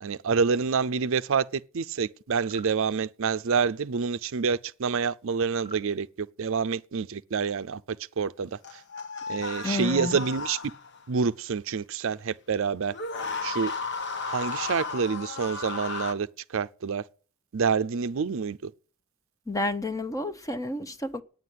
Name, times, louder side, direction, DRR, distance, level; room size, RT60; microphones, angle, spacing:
voice 1, 0.0-7.8 8.2-8.6 9.3-10.6 11.1-13.0 13.4-13.7 14.3-16.3 16.5-17.0 17.5-18.7, right 5 dB, 65° right, 0.5 m, -27 dB
sound 1, 2.4-2.7 5.5-5.9, equal, 20° right, 1.3 m, -47 dB
sound 2, 8.6-11.0 12.9-16.1, left 4 dB, 55° left, 1.0 m, -34 dB
voice 2, 9.6-10.2 19.5-21.2, left 2 dB, 15° left, 0.9 m, -30 dB
9.8 x 9.1 x 9.3 m
head